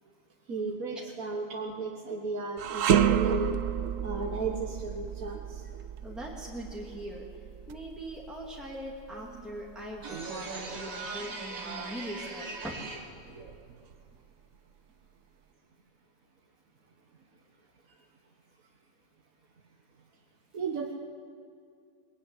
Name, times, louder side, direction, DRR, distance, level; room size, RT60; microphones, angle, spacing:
voice 1, 0.5-3.6 4.0-5.7 9.2-9.6 10.0-13.0 13.2-13.8 20.5-20.9, right 3 dB, 90° right, 1 dB, 1.8 m, -36 dB
sound 1, 2.6-11.8 12.2-12.4 13.3-14.2, right 9 dB, 70° right, 1.2 m, -31 dB
voice 2, 6.0-7.3 7.7-12.7, equal, ahead, -3 dB, 2.6 m, -41 dB
21.0 x 20.5 x 9.9 m, 2.3 s
omnidirectional pair, 1.4 m